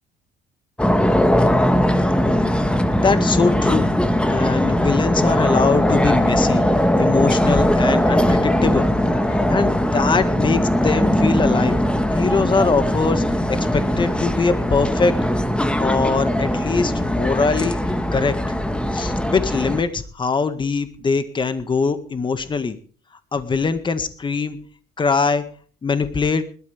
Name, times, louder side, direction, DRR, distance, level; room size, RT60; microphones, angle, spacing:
sound 1, 0.8-19.8, equal, 5° left, 1.5 m, -19 dB
voice 1, 2.9-3.9 4.3-6.6 7.0-8.9 9.2-11.8 12.1-13.2 13.5-15.2 15.8-17.8 18.1-18.3 18.9-22.8 23.3-24.6 25.0-25.4 25.8-26.4, left 4 dB, 30° left, 10 dB, 1.8 m, -22 dB
20.5 x 13.0 x 3.5 m, 0.42 s
cardioid pair, 110°, 17 cm